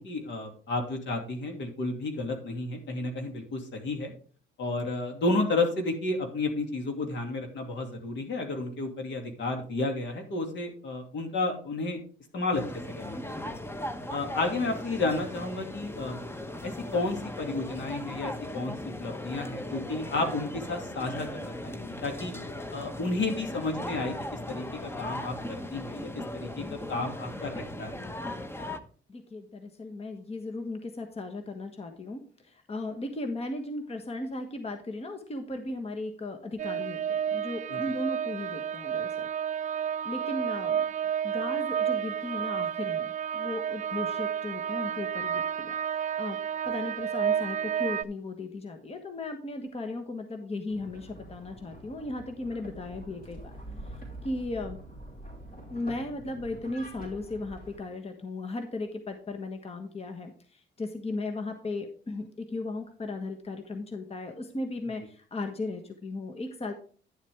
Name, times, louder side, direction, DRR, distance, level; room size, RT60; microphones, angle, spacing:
voice 1, 0.0-4.1 4.6-12.0 12.3-13.5 14.1-16.2 16.6-22.3 22.7-24.1 24.5-27.9 37.7-37.8, left 2 dB, 70° left, 4 dB, 2.5 m, -32 dB
sound 1, 12.5-28.8, left 1 dB, 10° left, 0.9 m, -38 dB
voice 2, 29.1-39.3 40.0-40.9 41.2-46.4 46.6-53.5 54.2-54.8 55.7-66.7, left 2 dB, 30° left, 5 dB, 1.4 m, -36 dB
sound 2, 36.6-48.0, right 8 dB, 35° right, 0.5 m, -31 dB
sound 3, 50.7-57.8, right 1 dB, 50° left, 4.8 m, -45 dB
10.5 x 7.4 x 3.5 m, 0.43 s
cardioid pair, 90°, 20 cm